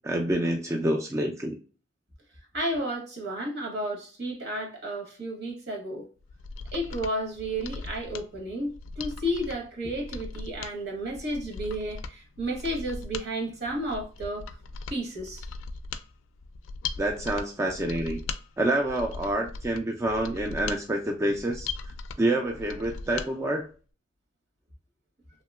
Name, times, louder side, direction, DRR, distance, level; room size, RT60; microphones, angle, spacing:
voice 1, 0.0-1.6 17.0-18.2 18.6-21.7 22.2-23.7, right 1 dB, 15° right, 0.3 m, -27 dB
voice 2, 2.5-6.1 6.7-14.4 14.9-15.4, right 1 dB, 60° right, 1.1 m, -32 dB
Mechanisms, 6.2-23.3 23.6-23.7, left 4 dB, 80° left, 0.3 m, -39 dB
2.9 x 2.8 x 2.2 m
head